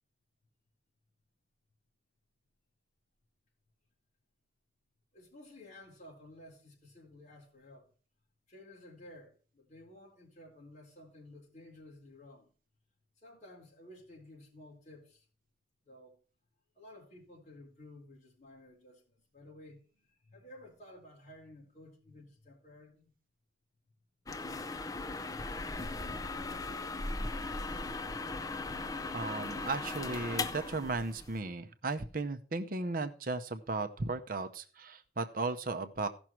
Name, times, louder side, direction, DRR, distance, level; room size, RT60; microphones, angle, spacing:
voice 1, 5.1-7.9 8.5-12.5 13.2-15.3 15.8-16.2 16.7-23.1, left 1 dB, 40° left, 4.0 m, -54 dB
sound 1, 24.3-31.4, left 3 dB, 20° left, 0.5 m, -38 dB
voice 2, 29.1-36.1, right 3 dB, 45° right, 0.7 m, -36 dB
16.0 x 6.1 x 4.4 m
head